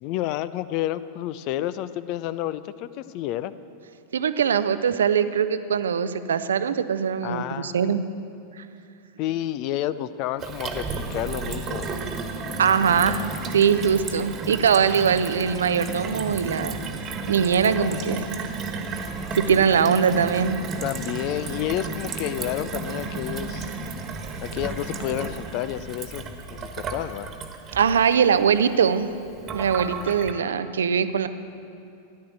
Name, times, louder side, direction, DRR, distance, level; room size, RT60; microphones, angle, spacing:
voice 1, 0.0-3.5 7.2-8.0 9.2-12.0 20.8-23.7 24.4-26.2 26.5-27.3, left 13 dB, 45° left, 15 dB, 0.5 m, -30 dB
voice 2, 4.1-8.0 12.6-13.2 13.5-16.8 17.3-18.3 19.3-20.6 27.7-29.1 29.5-31.3, right 7 dB, 65° right, 12 dB, 0.6 m, -21 dB
Gurgling / Water tap faucet / Sink (filling or washing), 10.4-30.3, right 3 dB, 30° right, 1.5 m, -33 dB
15.0 x 11.0 x 7.9 m, 2.6 s
figure-of-eight pair, 90°, 0 cm